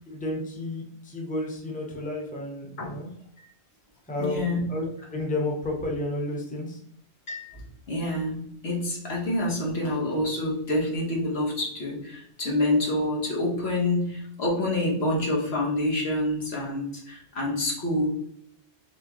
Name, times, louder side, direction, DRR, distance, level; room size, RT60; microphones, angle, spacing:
voice 1, 0.1-3.1 4.1-4.8 5.1-6.8, left 1 dB, 10° left, -1 dB, 0.9 m, -31 dB
voice 2, 4.2-4.7 7.3-18.1, left 1 dB, 70° left, -2 dB, 1.5 m, -27 dB
4.6 x 3.6 x 3.0 m, 0.70 s
omnidirectional pair, 1.1 m